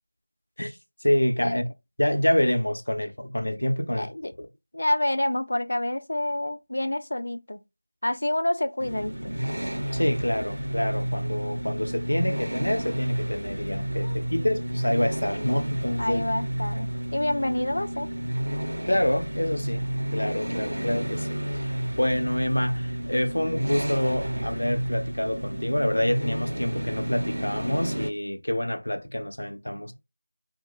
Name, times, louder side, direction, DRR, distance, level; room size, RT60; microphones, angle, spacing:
voice 1, 1.0-1.6 2.0-4.1 9.9-16.2 18.9-19.9 20.1-29.9, left 1 dB, 85° left, 0.8 m, -27 dB
voice 2, 3.9-4.3 4.7-7.6 8.0-9.3 14.0-14.2 16.0-18.1, left 1 dB, 55° left, 0.4 m, -28 dB
sound 1, 8.8-28.1, right 1 dB, 75° right, 0.6 m, -31 dB
3.0 x 2.2 x 2.3 m
figure-of-eight pair, 175°, 0 cm